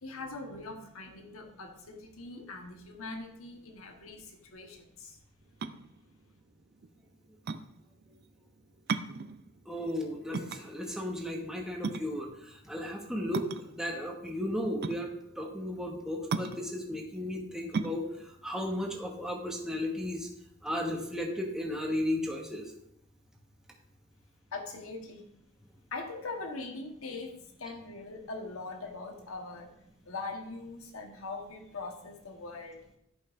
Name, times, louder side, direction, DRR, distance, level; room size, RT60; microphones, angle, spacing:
voice 1, 0.0-5.2 24.5-25.3 25.9-29.7 30.0-32.9, left 3 dB, 90° left, 3 dB, 1.2 m, -42 dB
sound 1, 5.4-19.8, right 4 dB, 50° right, 0.4 m, -38 dB
voice 2, 9.7-15.1 15.4-20.3 20.6-22.6, left 1 dB, 5° right, -1 dB, 1.2 m, -35 dB
14.0 x 5.4 x 2.6 m, 0.77 s
head